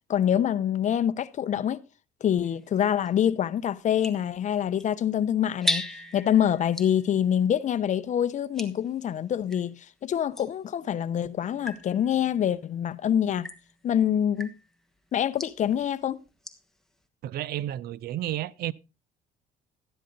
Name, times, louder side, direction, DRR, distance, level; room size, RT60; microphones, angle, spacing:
voice 1, 0.1-1.8 2.2-13.5 13.8-14.5 15.1-16.2, left 9 dB, 45° left, 0.7 m, -25 dB
sound 1, 2.4-9.7 10.3-16.8, left 2 dB, ahead, 1.3 m, -39 dB
voice 2, 17.2-18.7, right 13 dB, 65° right, 0.6 m, -31 dB
13.0 x 9.8 x 3.9 m
cardioid pair, 110°, 17 cm